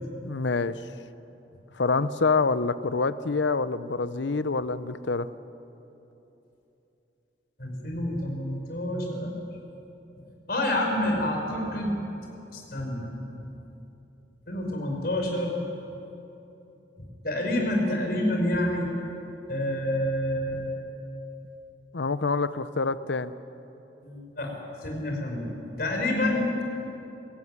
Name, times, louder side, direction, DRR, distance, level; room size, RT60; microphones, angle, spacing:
voice 1, 0.2-0.8 1.8-5.3 21.9-23.3, left 4 dB, 85° left, 14 dB, 0.8 m, -26 dB
voice 2, 7.6-9.4 10.5-11.9 12.5-13.1 14.5-15.5 17.2-18.9 19.5-20.8 24.0-24.5 24.8-25.5 25.8-26.6, left 1 dB, 55° left, 1 dB, 5.0 m, -28 dB
23.5 x 15.5 x 9.6 m, 3.0 s
head